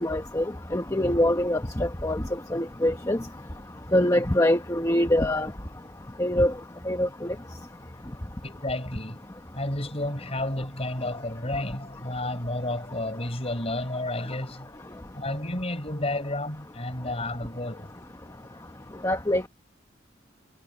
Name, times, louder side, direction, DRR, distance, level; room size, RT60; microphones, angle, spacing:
voice 1, 0.0-3.2 3.9-5.5 6.2-6.5 6.8-7.3 19.0-19.5, left 1 dB, 15° left, 1.2 m, -24 dB
voice 2, 8.4-9.2 9.5-14.7 15.1-17.9, left 1 dB, 35° left, 5.2 m, -31 dB
head